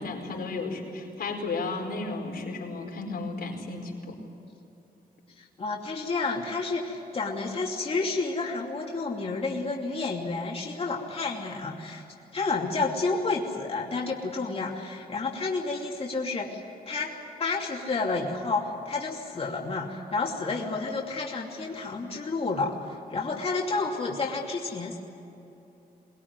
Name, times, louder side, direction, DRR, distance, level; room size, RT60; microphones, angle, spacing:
voice 1, 0.0-4.2, left 3 dB, 85° left, 1 dB, 4.9 m, -33 dB
voice 2, 5.4-12.0 12.3-16.6 16.9-25.0, left 3 dB, 40° left, -2 dB, 2.8 m, -30 dB
23.0 x 21.0 x 9.7 m, 2.9 s
wide cardioid pair, 150°, 16 cm